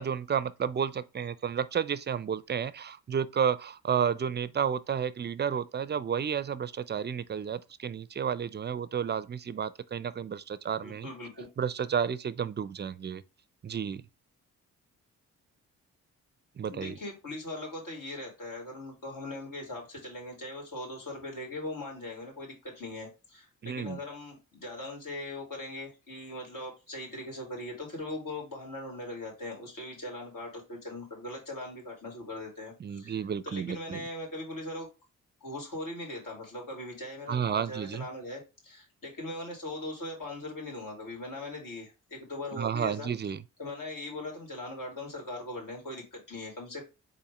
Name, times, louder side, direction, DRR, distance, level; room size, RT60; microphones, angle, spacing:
voice 1, 0.0-11.1 11.6-13.2 13.6-14.0 16.6-16.9 23.6-24.0 32.8-34.0 37.3-38.1 42.5-43.4, right 7 dB, 30° right, 0.4 m, -31 dB
voice 2, 10.8-11.5 16.7-34.9 35.4-43.1 43.6-46.8, left 2 dB, 60° left, 2.6 m, -40 dB
4.1 x 2.7 x 4.8 m
supercardioid pair, 45°, 36 cm